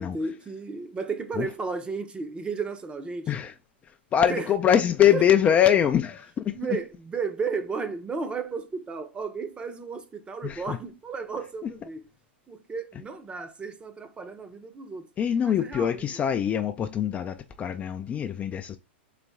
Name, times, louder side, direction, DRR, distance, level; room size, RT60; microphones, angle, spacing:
voice 1, 0.0-3.3 4.3-4.5 5.1-5.2 6.5-12.0 12.5-15.1 15.4-16.2, right 4 dB, 15° right, 0.7 m, -33 dB
voice 2, 4.1-6.6 10.4-10.8 11.6-11.7 15.2-18.8, left 9 dB, 25° left, 0.4 m, -23 dB
4.1 x 2.9 x 3.5 m
hypercardioid pair, 115°, 6 cm